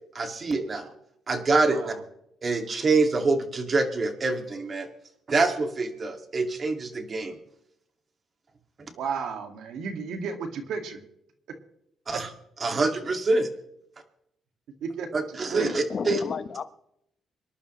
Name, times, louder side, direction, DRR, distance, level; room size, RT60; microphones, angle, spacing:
voice 1, 0.1-0.9 1.3-1.9 2.4-4.9 5.3-7.4 12.1-12.3 12.6-13.5 15.1-16.2, right 3 dB, 40° right, 5 dB, 2.4 m, -25 dB
voice 2, 9.0-11.0 14.8-15.2 15.5-15.7, right 5 dB, 75° right, 5 dB, 2.2 m, -33 dB
voice 3, 15.5-16.6, left 6 dB, 50° left, 12 dB, 1.0 m, -32 dB
25.5 x 11.0 x 3.3 m, 0.76 s
cardioid pair, 90°, 0 cm